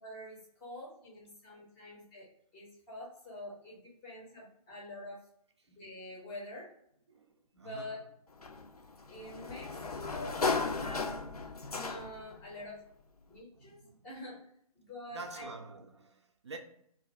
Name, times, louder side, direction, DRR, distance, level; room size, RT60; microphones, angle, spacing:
voice 1, 0.0-2.3 2.5-5.2 5.7-6.7 7.5-8.0 9.1-11.2 11.7-12.8 13.3-14.5 14.7-15.5, left 1 dB, 10° left, 0.6 m, -46 dB
voice 2, 7.1-8.0 13.5-14.1 15.1-16.6, right 4 dB, 50° right, 0.4 m, -48 dB
Sliding door, 8.4-12.3, left 4 dB, 80° left, 0.5 m, -35 dB
2.5 x 2.4 x 4.1 m
figure-of-eight pair, 140°, 19 cm